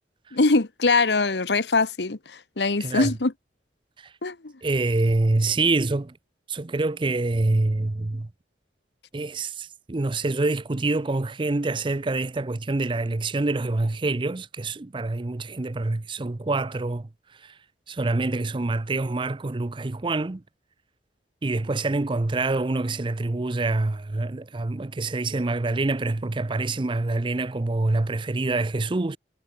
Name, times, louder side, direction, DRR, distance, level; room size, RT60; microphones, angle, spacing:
voice 1, 0.3-3.3 4.2-4.5, left 3 dB, 75° left, 1.2 m, -22 dB
voice 2, 2.8-3.1 4.0-4.1 4.6-6.2 6.5-8.3 9.1-17.6 17.9-20.4 21.4-29.2, right 2 dB, 30° right, 0.5 m, -26 dB
head